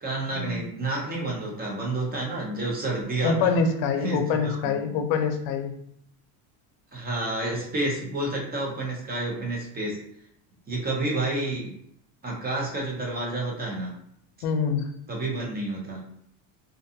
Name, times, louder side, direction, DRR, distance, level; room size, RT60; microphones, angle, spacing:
voice 1, 0.0-3.5 4.0-4.7 6.9-10.0 10.7-11.8 12.2-13.9 15.1-16.1, right 2 dB, 20° right, -1 dB, 0.6 m, -30 dB
voice 2, 3.2-5.7 14.4-14.9, left 5 dB, 85° left, 7 dB, 0.6 m, -25 dB
2.6 x 2.2 x 2.7 m, 0.70 s
cardioid pair, 130°, 47 cm